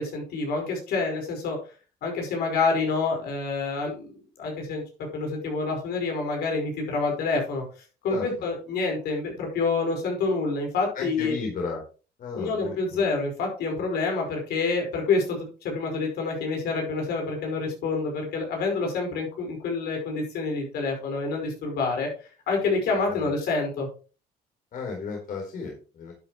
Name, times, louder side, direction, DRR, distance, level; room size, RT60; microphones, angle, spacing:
voice 1, 0.0-1.6 2.0-4.1 4.4-4.8 5.1-7.6 8.0-11.3 12.4-22.1 22.5-23.9, left 4 dB, 70° left, 2 dB, 5.1 m, -27 dB
voice 2, 10.9-11.8 12.2-13.1 23.1-23.3 24.7-26.1, left 4 dB, 55° left, 0 dB, 4.1 m, -34 dB
12.0 x 8.3 x 3.1 m, 0.35 s
cardioid pair, 110°, 17 cm